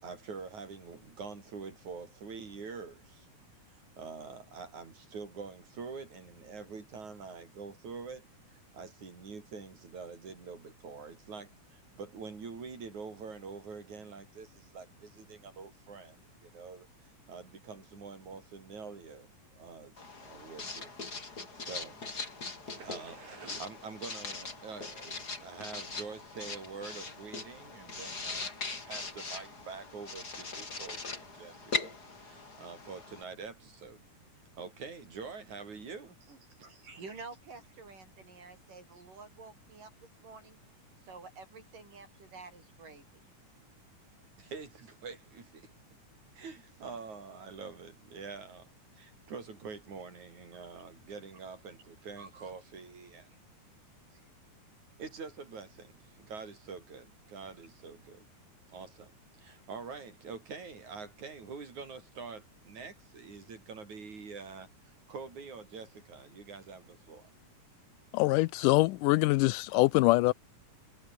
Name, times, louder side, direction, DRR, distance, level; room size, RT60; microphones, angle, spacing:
voice 1, 0.0-3.3 3.7-8.2 8.5-16.9 17.3-19.3 19.6-20.9 21.3-22.0 22.7-31.9 32.2-34.0 34.6-36.1 44.4-45.7 46.3-53.4 54.1-54.2 55.0-58.3 58.7-59.1 59.4-67.3, right 5 dB, 60° right, 6.3 m, -46 dB
Writing, 20.0-33.2, left 3 dB, 30° left, 3.9 m, -41 dB
voice 2, 36.1-40.6 41.0-43.2 50.7-50.8 52.2-52.5, right 4 dB, 80° right, 8.4 m, -50 dB
voice 3, 68.1-70.3, left 20 dB, 85° left, 2.1 m, -24 dB
omnidirectional pair, 3.7 m